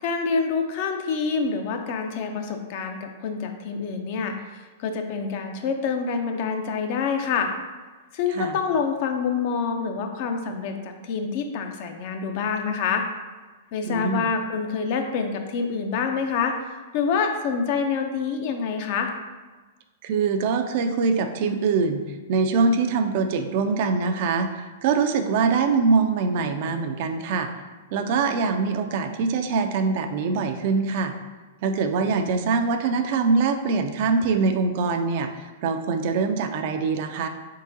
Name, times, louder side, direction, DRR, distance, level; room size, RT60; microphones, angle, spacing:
voice 1, 0.0-7.5 8.1-13.0 13.7-16.5 16.9-19.1, left 5 dB, 50° left, 5 dB, 0.5 m, -26 dB
voice 2, 13.8-14.3 20.0-22.0 22.3-27.5 27.9-31.1 31.6-37.3, right 4 dB, 50° right, 6 dB, 0.3 m, -23 dB
3.7 x 3.6 x 2.6 m, 1.3 s
hypercardioid pair, 110°, 0 cm